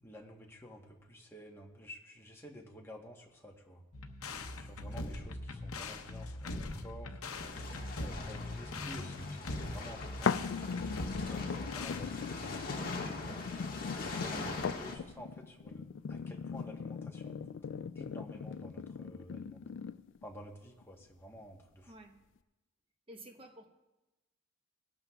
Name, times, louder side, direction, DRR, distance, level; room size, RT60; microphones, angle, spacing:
voice 1, 0.0-3.8 4.6-7.1 8.0-10.4 11.1-13.4 14.0-17.3 17.9-19.6 20.2-21.9, equal, 10° left, 0 dB, 1.1 m, -51 dB
sound 1, 3.9-12.0, left 2 dB, 85° left, 0.8 m, -41 dB
sound 2, 7.3-15.0, left 3 dB, 40° left, 1.5 m, -42 dB
voice 2, 8.1-8.6 21.9-22.2 23.1-23.7, right 1 dB, 25° right, 4 dB, 1.0 m, -53 dB
sound 3, 10.3-20.2 20.8-20.9, left 6 dB, 60° left, 0.3 m, -39 dB
18.5 x 11.5 x 2.3 m, 1.0 s
head